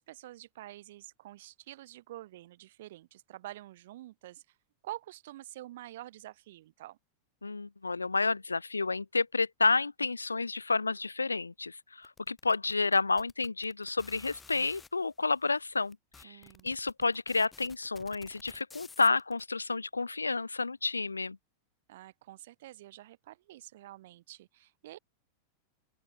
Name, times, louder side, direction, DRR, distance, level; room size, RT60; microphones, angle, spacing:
voice 1, 0.0-4.6 4.8-7.0 16.2-16.7 21.9-25.0, right 15 dB, 55° right, 2.4 m, -47 dB
voice 2, 7.4-21.4, left 3 dB, 80° left, 0.4 m, -30 dB
sound 1, 12.0-14.9 15.6-15.7 15.9-19.4, left 5 dB, 15° left, 6.0 m, -53 dB
open air
figure-of-eight pair, 90°, 0 cm